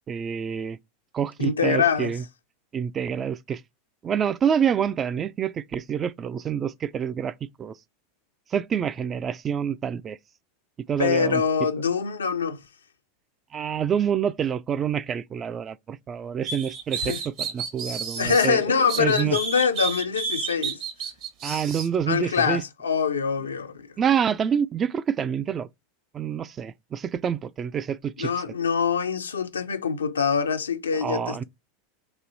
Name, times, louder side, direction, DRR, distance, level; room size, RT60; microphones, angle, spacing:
voice 1, 0.1-0.8 1.1-2.2 2.7-3.6 4.0-7.8 8.5-10.2 10.9-11.4 13.5-19.4 21.4-22.6 24.0-25.7 26.1-28.3 31.0-31.4, right 8 dB, 30° right, 0.3 m, -27 dB
voice 2, 1.4-2.1 11.0-12.6 16.9-17.2 18.2-20.8 22.1-23.9 28.2-31.4, left 6 dB, 90° left, 0.5 m, -24 dB
sound 1, 16.4-18.5 18.9-21.9, right 5 dB, 50° right, 1.0 m, -31 dB
3.1 x 2.6 x 3.9 m
hypercardioid pair, 90°, 0 cm